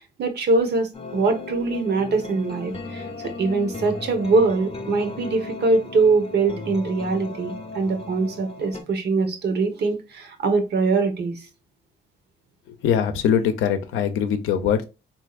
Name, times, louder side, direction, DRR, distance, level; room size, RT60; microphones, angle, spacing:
voice 1, 0.2-11.4, right 3 dB, 55° right, 0.8 m, -23 dB
sound 1, 0.9-8.8, left 3 dB, 30° left, 0.6 m, -36 dB
voice 2, 12.7-14.8, left 8 dB, 90° left, 0.5 m, -22 dB
3.5 x 2.6 x 2.3 m
cardioid pair, 90°, 20 cm